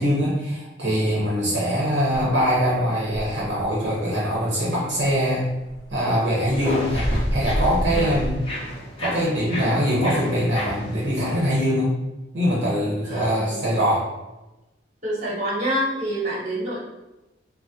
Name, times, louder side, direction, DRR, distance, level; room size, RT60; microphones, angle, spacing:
voice 1, 0.0-5.5 5.9-8.4 9.0-12.0 12.3-14.1, equal, 65° right, -6 dB, 0.8 m, -23 dB
sound 1, 2.1-3.9 4.2-4.3 4.6-5.1 5.4-8.3, equal, 15° right, 0.9 m, -29 dB
sound 2, 6.5-11.6, left 1 dB, 30° left, 0.6 m, -33 dB
voice 2, 13.0-13.7 15.0-16.8, right 1 dB, 40° right, -6 dB, 1.1 m, -27 dB
3.4 x 2.1 x 2.7 m, 1.0 s
head